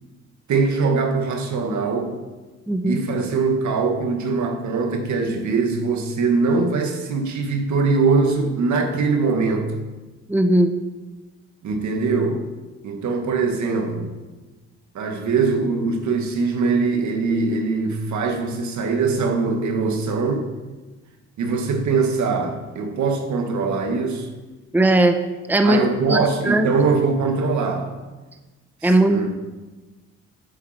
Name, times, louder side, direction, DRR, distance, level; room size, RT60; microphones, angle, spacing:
voice 1, 0.5-2.1 2.8-9.7 11.6-12.4 12.8-14.1 14.9-20.5 21.4-24.3 25.6-28.0 28.8-29.3, right 4 dB, 70° right, 4 dB, 2.0 m, -22 dB
voice 2, 2.7-3.0 10.3-10.7 24.7-25.2 25.5-25.8 26.1-26.2 26.4-26.7 28.8-29.2, right 1 dB, 5° right, 7 dB, 0.9 m, -17 dB
15.0 x 8.4 x 4.5 m, 1.2 s
cardioid pair, 90°, 30 cm